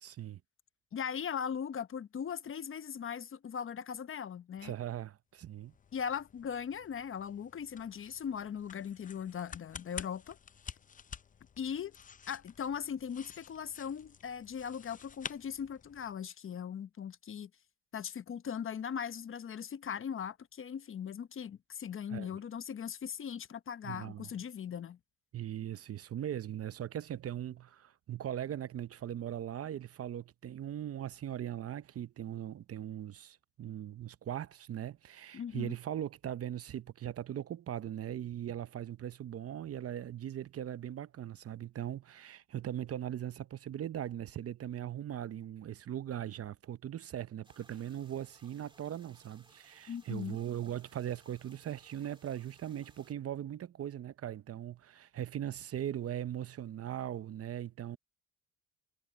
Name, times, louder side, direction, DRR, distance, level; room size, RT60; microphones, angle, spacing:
voice 1, 0.0-0.4 4.6-5.7 22.1-22.4 23.8-24.3 25.3-58.0, right 11 dB, 50° right, 0.7 m, -40 dB
voice 2, 0.9-4.7 5.9-10.4 11.6-12.0 12.3-17.5 17.9-25.0 35.3-35.8 49.9-50.4, left 7 dB, 45° left, 0.8 m, -39 dB
sound 1, 5.4-16.2, left 7 dB, 25° left, 0.5 m, -50 dB
sound 2, 47.4-53.1, right 2 dB, 15° right, 2.2 m, -63 dB
cardioid pair, 90°, 30 cm